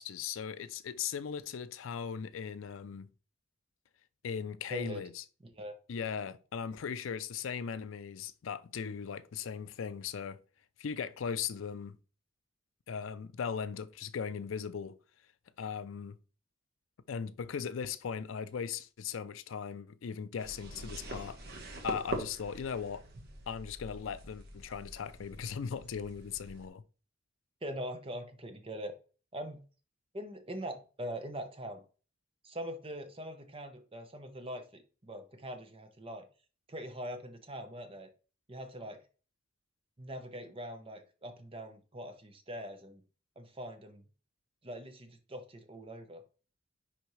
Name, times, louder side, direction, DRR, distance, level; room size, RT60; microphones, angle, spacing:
voice 1, 0.0-3.1 4.2-5.2 5.9-10.4 10.8-12.0 12.9-15.0 15.6-16.2 17.1-21.4 21.8-23.0 23.5-26.8, left 7 dB, 80° left, 0.4 m, -38 dB
voice 2, 4.7-5.0 5.4-5.8 27.6-28.9 29.3-29.6 30.1-31.8 32.4-36.3 36.7-38.1 38.5-39.0 40.0-43.0 43.4-44.0 44.6-46.2, equal, 30° right, 0.9 m, -42 dB
sound 1, 20.4-26.7, right 1 dB, 50° right, 1.3 m, -44 dB
10.0 x 3.4 x 3.2 m
head